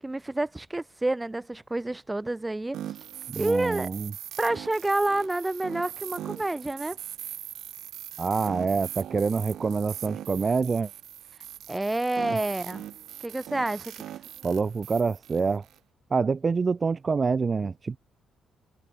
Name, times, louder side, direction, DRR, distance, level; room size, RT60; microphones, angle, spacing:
voice 1, 0.0-2.8 3.3-3.9 4.4-7.0 11.7-12.8 13.2-14.0, right 2 dB, 15° right, 6.5 m, -28 dB
sound 1, 2.7-15.8, right 12 dB, 75° right, 7.4 m, -41 dB
voice 2, 3.3-4.1 8.2-10.9 14.4-15.6 16.1-18.0, right 5 dB, 35° right, 0.7 m, -26 dB
cardioid pair, 90°, 0 cm